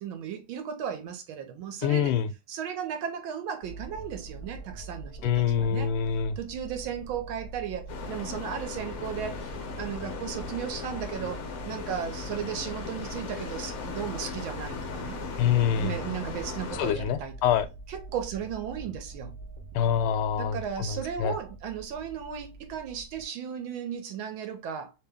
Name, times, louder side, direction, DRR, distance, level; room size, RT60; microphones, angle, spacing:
voice 1, 0.0-2.1 2.5-5.9 6.4-15.2 15.8-17.4 17.9-19.3 20.4-24.9, right 8 dB, 75° right, 1.4 m, -35 dB
voice 2, 1.8-2.3 5.2-6.4 15.4-15.9 16.8-17.7 19.7-21.3, left 8 dB, 85° left, 1.5 m, -25 dB
sound 1, 3.6-23.2, right 3 dB, 55° right, 0.3 m, -43 dB
sound 2, 7.9-16.9, left 6 dB, 65° left, 0.8 m, -38 dB
3.3 x 2.9 x 3.4 m
omnidirectional pair, 2.3 m